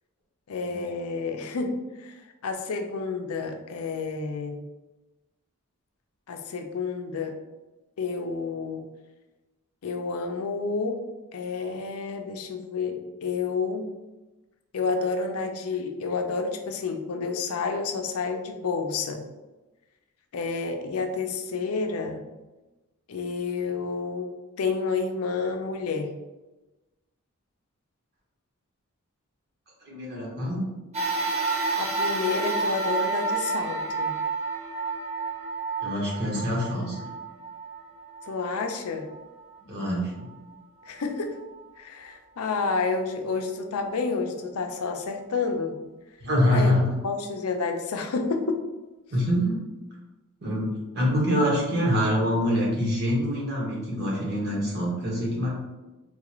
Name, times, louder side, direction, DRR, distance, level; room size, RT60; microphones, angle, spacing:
voice 1, 0.5-2.2 2.4-4.6 6.3-7.3 8.0-8.9 9.8-11.0 11.3-13.8 14.7-19.2 20.3-22.2 23.1-26.1 31.8-34.1 38.3-39.1 40.9-41.3 41.8-45.7 46.5-46.7 47.0-48.6, left 4 dB, 80° left, 4 dB, 0.5 m, -30 dB
voice 2, 29.9-30.7 35.8-37.0 39.7-40.3 46.2-46.9 49.1-49.6 50.4-55.5, equal, 50° right, -4 dB, 1.1 m, -25 dB
sound 1, 30.9-39.6 40.2-40.3 41.4-41.5, right 3 dB, 30° right, 0.6 m, -30 dB
3.8 x 2.4 x 3.0 m, 1.1 s
head